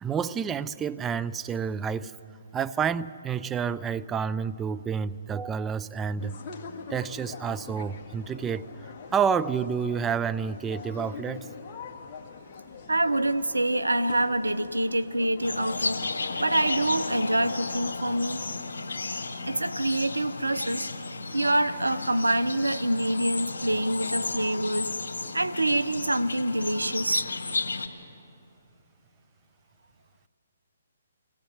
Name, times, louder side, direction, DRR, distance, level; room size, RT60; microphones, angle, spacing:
voice 1, 0.0-2.2 2.5-6.4 6.7-8.7 9.1-11.5, right 7 dB, 15° right, 13 dB, 0.4 m, -29 dB
sound 1, 6.2-17.8, left 5 dB, 30° left, 1.8 m, -43 dB
voice 2, 12.9-16.0 16.4-18.4 19.5-20.9 21.3-24.9 25.3-27.3, right 1 dB, 90° right, 14 dB, 0.7 m, -26 dB
sound 2, 15.4-27.9, left 3 dB, 70° left, 2.3 m, -33 dB
23.5 x 17.0 x 8.0 m, 2.7 s
figure-of-eight pair, 135°, 0 cm